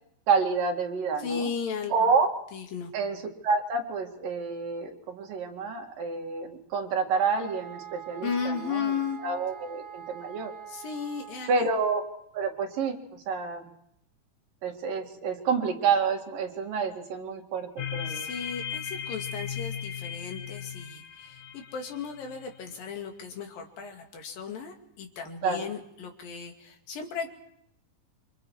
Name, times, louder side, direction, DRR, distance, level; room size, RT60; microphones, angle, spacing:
voice 1, 0.3-1.5 1.9-2.3 2.9-3.2 3.4-8.9 9.2-10.5 11.5-12.0 12.3-13.6 14.6-18.3 25.4-25.7, right 5 dB, 75° right, 1 dB, 3.9 m, -28 dB
voice 2, 1.2-2.1 2.5-2.9 8.2-9.2 10.7-11.7 18.1-27.3, left 6 dB, 85° left, 3 dB, 4.0 m, -35 dB
sound 1, 7.1-11.8, right 9 dB, 40° right, 1.1 m, -44 dB
sound 2, 17.8-22.6, left 8 dB, 70° left, 2.7 m, -37 dB
28.0 x 25.5 x 4.8 m, 0.75 s
omnidirectional pair, 3.9 m